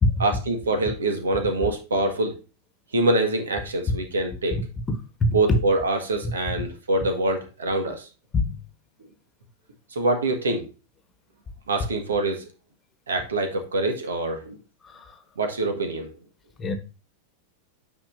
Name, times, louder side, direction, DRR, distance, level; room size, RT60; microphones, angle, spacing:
voice 1, 0.2-2.4 2.9-4.6 5.3-8.1 9.9-10.6 11.7-12.5 13.1-14.6 15.4-16.1, right 2 dB, 70° right, 1.7 m, -25 dB
voice 2, 5.2-5.3 8.3-8.6 14.8-15.1 16.6-16.7, left 2 dB, 20° left, 1.4 m, -24 dB
9.1 x 5.4 x 2.6 m
figure-of-eight pair, 90°, 0 cm